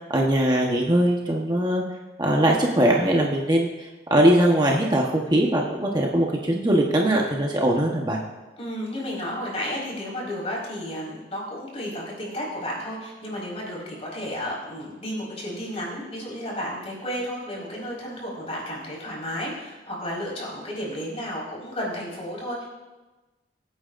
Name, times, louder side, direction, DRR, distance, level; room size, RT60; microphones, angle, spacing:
voice 1, 0.1-1.8 2.2-8.2, right 1 dB, 25° right, -1 dB, 1.1 m, -21 dB
voice 2, 8.6-22.7, equal, 35° left, -4 dB, 4.7 m, -32 dB
23.5 x 9.1 x 2.6 m, 1.2 s
head